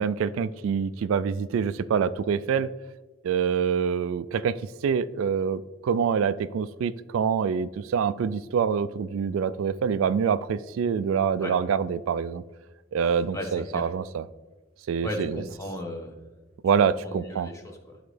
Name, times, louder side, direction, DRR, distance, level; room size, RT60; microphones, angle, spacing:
voice 1, 0.0-2.7 3.2-4.6 4.8-12.4 12.9-14.2 14.9-15.4 16.6-17.5, right 7 dB, 85° right, 14 dB, 0.3 m, -26 dB
voice 2, 13.3-13.9 15.0-16.1 17.0-18.0, equal, 15° left, 2 dB, 1.0 m, -35 dB
11.5 x 3.9 x 3.2 m, 1.2 s
head